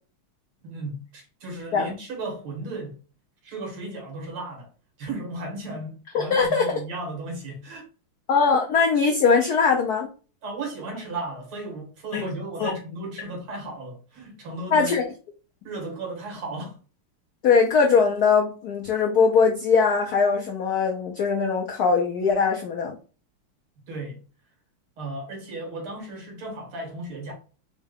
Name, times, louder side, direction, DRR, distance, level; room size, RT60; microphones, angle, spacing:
voice 1, 0.6-3.0 3.4-4.7 5.0-7.9 10.4-15.0 15.6-16.8 23.9-24.2 25.0-27.3, right 2 dB, 75° right, 2.3 m, -35 dB
voice 2, 6.1-6.7 8.3-10.1 12.1-12.3 12.6-12.7 14.7-15.0 17.4-22.9, left 5 dB, 80° left, 0.8 m, -21 dB
4.5 x 2.2 x 3.3 m
omnidirectional pair, 2.3 m